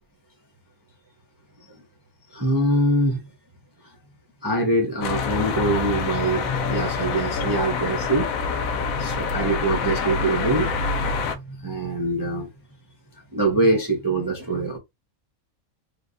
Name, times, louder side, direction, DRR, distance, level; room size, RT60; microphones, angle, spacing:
voice 1, 2.3-3.2 4.4-8.3 9.0-10.9 11.3-12.5 13.3-14.8, right 1 dB, 35° right, 0.3 m, -24 dB
sound 1, 5.0-11.3, left 4 dB, 75° left, 1.0 m, -26 dB
3.3 x 2.2 x 2.4 m
omnidirectional pair, 1.5 m